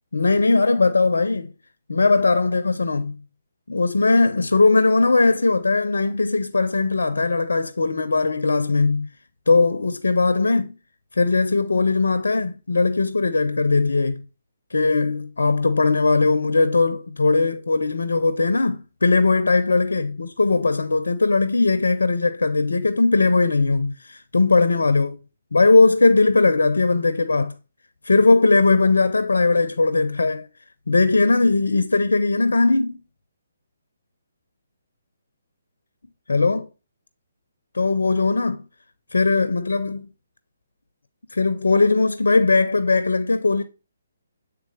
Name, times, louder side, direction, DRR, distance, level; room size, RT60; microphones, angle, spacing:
voice 1, 0.1-1.5 1.9-3.1 3.7-9.1 9.5-10.7 11.1-14.2 14.7-25.2 25.5-27.5 28.0-30.5 30.9-33.0 36.3-36.7 37.7-38.6 39.1-40.1 41.3-43.6, left 3 dB, 75° left, 0.5 m, -19 dB
8.4 x 3.5 x 3.2 m
figure-of-eight pair, 140°, 0 cm